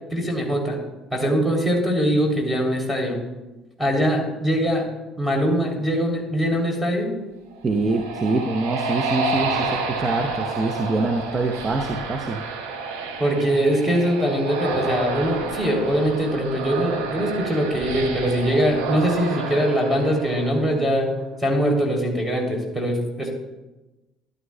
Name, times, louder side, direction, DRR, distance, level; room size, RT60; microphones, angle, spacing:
voice 1, 0.1-0.8 1.1-3.2 3.8-4.8 5.2-7.1 13.2-21.1 21.4-23.3, equal, ahead, -1 dB, 3.1 m, -22 dB
sound 1, 7.5-21.1, right 3 dB, 75° right, 0.9 m, -30 dB
voice 2, 7.6-12.4, right 3 dB, 30° right, 4 dB, 0.8 m, -24 dB
12.5 x 11.0 x 2.2 m, 1.1 s
figure-of-eight pair, 55°, 0 cm